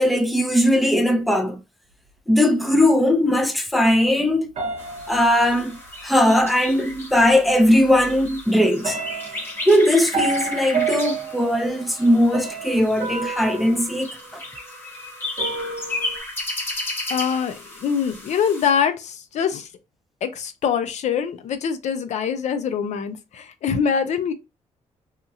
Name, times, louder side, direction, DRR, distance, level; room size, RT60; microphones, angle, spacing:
voice 1, 0.0-1.6 2.3-4.5 5.1-5.8 6.0-9.0 9.7-14.1, left 1 dB, ahead, 0.5 m, -19 dB
sound 1, 4.6-6.0 7.2-7.3 7.8-8.3 8.8-14.8 15.4-16.2, right 5 dB, 55° right, 0.9 m, -30 dB
sound 2, 4.8-18.7, left 2 dB, 20° left, 1.0 m, -34 dB
voice 2, 17.1-19.7 20.2-24.3, left 7 dB, 70° left, 0.5 m, -24 dB
2.8 x 2.4 x 2.7 m
cardioid pair, 125°, 12 cm